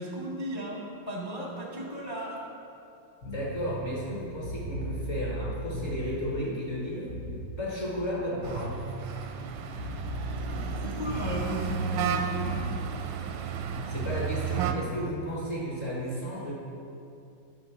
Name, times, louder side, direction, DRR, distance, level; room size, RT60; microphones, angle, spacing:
voice 1, 0.0-2.5 10.8-12.7, equal, 25° left, -3 dB, 0.6 m, -35 dB
sound 1, 3.2-6.3 7.1-7.5 8.4-11.6 12.4-12.8 13.8-15.0, right 1 dB, 60° left, 1.3 m, -37 dB
voice 2, 3.2-7.1 7.6-8.8 13.9-16.5, equal, 40° left, -5 dB, 1.5 m, -33 dB
Sounds of Labrang town in China (cars vehicles), 8.4-14.7, right 8 dB, 85° right, 1.3 m, -33 dB
9.3 x 3.9 x 6.0 m, 2.6 s
omnidirectional pair, 2.0 m